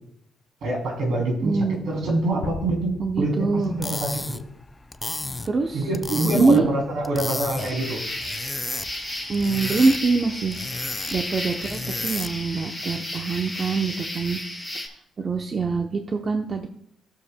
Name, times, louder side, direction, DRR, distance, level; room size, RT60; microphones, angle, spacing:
voice 1, 0.6-4.4 5.7-8.0, right 1 dB, 70° right, 1 dB, 2.9 m, -25 dB
voice 2, 1.4-1.8 3.0-3.8 5.4-5.9 6.4-6.7 9.3-10.6 11.1-14.4 15.2-16.7, right 4 dB, 40° right, 4 dB, 0.7 m, -24 dB
sound 1, 2.4-4.4, left 4 dB, 60° left, 0.9 m, -38 dB
sound 2, 3.6-12.5, left 2 dB, 15° left, 0.4 m, -34 dB
sound 3, 7.6-14.9, left 1 dB, 5° right, 2.5 m, -33 dB
15.5 x 6.7 x 2.2 m, 0.69 s
cardioid pair, 90°, 0 cm